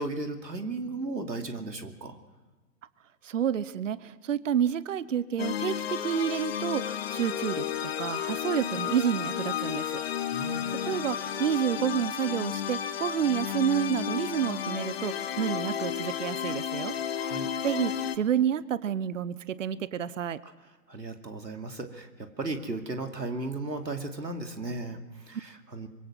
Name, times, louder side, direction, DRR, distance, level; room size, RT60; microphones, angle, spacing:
voice 1, 0.0-2.2 10.3-10.7 17.2-17.5 20.4-20.5 20.9-25.9, right 2 dB, 85° right, 5 dB, 2.7 m, -35 dB
voice 2, 3.2-10.0 10.9-16.9 17.6-20.4, right 9 dB, 50° right, 18 dB, 0.9 m, -29 dB
sound 1, 5.4-18.2, left 9 dB, 35° left, 1.1 m, -32 dB
25.0 x 22.5 x 6.0 m, 1.2 s
figure-of-eight pair, 130°, 49 cm